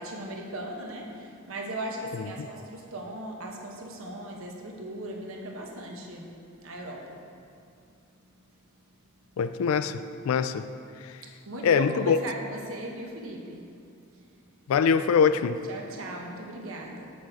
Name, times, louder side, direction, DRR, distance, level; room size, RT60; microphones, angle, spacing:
voice 1, 0.0-6.3 6.6-7.2 11.5-13.7 14.1-14.3 15.7-17.1, right 1 dB, 75° right, 1.0 m, -38 dB
voice 2, 9.4-10.7 11.6-12.2 14.7-15.6, left 6 dB, 80° left, 0.3 m, -23 dB
7.1 x 6.1 x 4.5 m
head